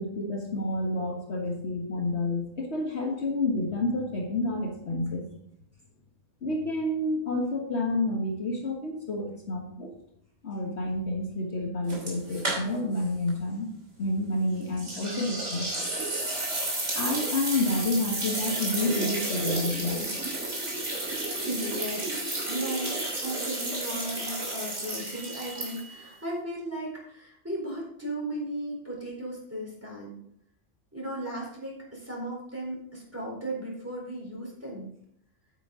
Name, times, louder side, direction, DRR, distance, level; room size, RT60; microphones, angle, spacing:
voice 1, 0.0-5.2 6.4-9.9 10.4-13.7 14.0-15.7 16.9-20.1, left 2 dB, 60° left, 0 dB, 1.7 m, -29 dB
sound 1, 11.9-13.0 13.3-13.4 14.8-26.1, right 2 dB, 65° right, 3.2 m, -32 dB
voice 2, 21.3-22.1 22.5-30.2 30.9-34.9, right 1 dB, 10° right, -4 dB, 4.0 m, -36 dB
9.5 x 8.8 x 3.8 m, 0.71 s
omnidirectional pair, 1.3 m